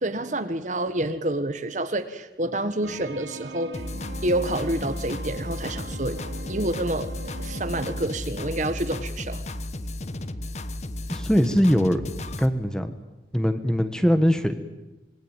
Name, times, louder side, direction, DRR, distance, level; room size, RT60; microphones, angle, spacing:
voice 1, 0.0-3.8 4.2-6.2 6.5-9.4, right 1 dB, 45° right, 10 dB, 1.5 m, -28 dB
sound 1, 2.8-8.1, right 2 dB, 90° right, 2.4 m, -40 dB
sound 2, 3.7-12.5, left 1 dB, 40° left, 1.2 m, -34 dB
voice 2, 11.1-12.0 12.4-12.9 13.3-14.5, equal, 5° left, 9 dB, 1.5 m, -21 dB
26.5 x 22.0 x 9.1 m, 1.0 s
head